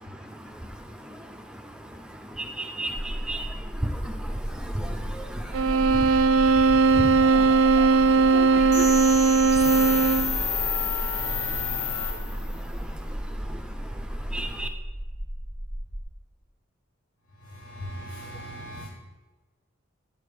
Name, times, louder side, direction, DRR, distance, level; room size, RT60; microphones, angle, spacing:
voice 1, 0.0-14.7, right 1 dB, 5° right, 4 dB, 0.6 m, -37 dB
sound 1, 2.9-16.0, equal, 30° left, 1.3 m, -34 dB
sound 2, 5.5-10.4, right 4 dB, 85° right, 0.4 m, -19 dB
sound 3, 8.7-12.6, left 5 dB, 50° left, 2.4 m, -30 dB
voice 2, 17.4-18.8, equal, 75° left, -4 dB, 1.3 m, -39 dB
7.5 x 3.6 x 6.5 m, 1.2 s
head